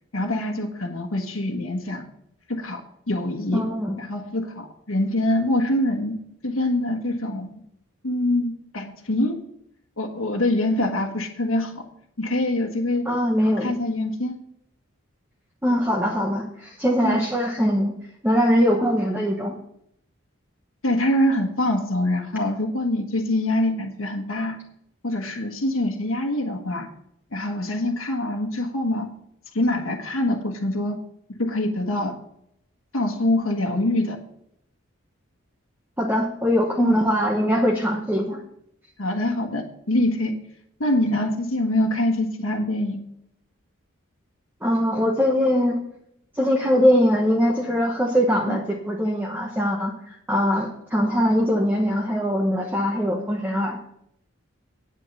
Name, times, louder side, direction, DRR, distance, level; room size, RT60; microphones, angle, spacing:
voice 1, 0.1-2.1 2.5-2.8 3.1-3.7 4.0-6.2 6.4-7.6 8.0-9.4 10.0-11.9 12.2-13.1 13.4-14.4 17.0-17.2 20.8-24.6 25.0-26.9 27.3-29.1 29.5-31.0 31.4-32.2 32.9-34.2 36.8-37.0 39.0-40.3 40.8-43.0 48.5-48.6, left 1 dB, 85° left, 1 dB, 1.4 m, -24 dB
voice 2, 3.5-4.0 13.0-13.7 15.6-17.9 18.2-19.5 36.0-38.4 44.6-45.8 46.3-53.8, equal, 10° right, 0 dB, 1.0 m, -22 dB
9.1 x 8.9 x 5.4 m, 0.72 s
head